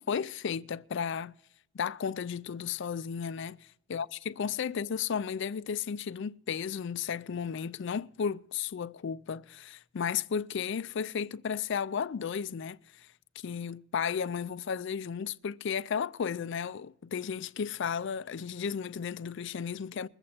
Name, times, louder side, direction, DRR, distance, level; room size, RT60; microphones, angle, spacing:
voice 1, 0.0-1.3 1.7-13.1 13.4-20.1, left 7 dB, 60° left, 0.4 m, -34 dB
21.5 x 8.0 x 4.3 m
head